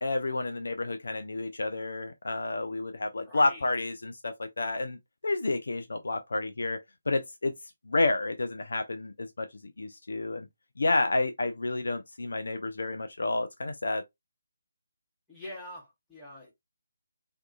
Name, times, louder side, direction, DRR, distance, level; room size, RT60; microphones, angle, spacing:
voice 1, 0.0-6.8 7.1-7.5 7.9-10.5 10.8-14.0, left 2 dB, 60° left, 0.3 m, -30 dB
voice 2, 3.2-3.7 15.3-16.5, left 1 dB, 5° left, 0.9 m, -44 dB
2.6 x 2.3 x 2.2 m
figure-of-eight pair, 150°, 0 cm